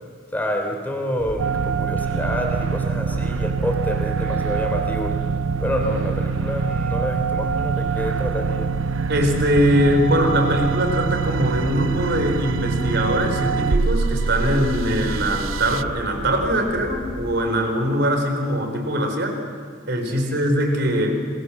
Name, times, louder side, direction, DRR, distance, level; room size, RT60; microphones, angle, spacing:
voice 1, 0.3-5.2 5.6-8.7 20.1-20.4, equal, 10° left, 3 dB, 3.7 m, -27 dB
sound 1, 1.2-17.3, equal, 30° right, 2.9 m, -34 dB
sound 2, 1.4-15.8, right 5 dB, 90° right, 0.6 m, -25 dB
voice 2, 9.1-19.4 19.9-21.2, equal, 55° right, 5 dB, 4.4 m, -21 dB
28.5 x 22.5 x 7.4 m, 2.2 s
head